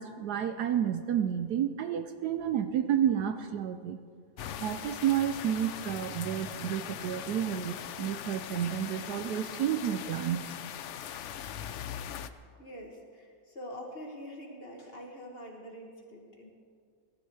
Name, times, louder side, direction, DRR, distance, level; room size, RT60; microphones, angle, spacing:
voice 1, 0.0-4.0 4.6-10.4, right 10 dB, 70° right, 9 dB, 1.1 m, -30 dB
sound 1, 4.4-12.3, left 9 dB, 85° left, 0.6 m, -40 dB
voice 2, 12.6-16.5, equal, 35° left, 0 dB, 1.9 m, -45 dB
18.0 x 12.5 x 4.8 m, 2.2 s
omnidirectional pair, 1.9 m